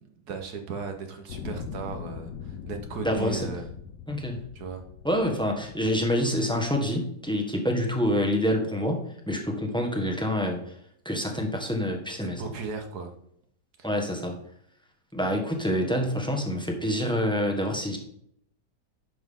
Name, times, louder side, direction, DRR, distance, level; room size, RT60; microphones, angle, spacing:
voice 1, 0.0-3.7 4.5-4.8 12.2-13.2 13.8-14.0, right 5 dB, 70° right, 5 dB, 1.6 m, -36 dB
sound 1, 1.3-6.6 7.3-7.4, left 7 dB, 80° left, 1.3 m, -41 dB
voice 2, 3.0-3.5 4.1-4.4 5.0-10.7 11.0-12.4 13.8-14.3 15.1-18.0, equal, 5° left, 2 dB, 1.2 m, -27 dB
10.5 x 5.9 x 3.7 m, 0.70 s
omnidirectional pair, 1.8 m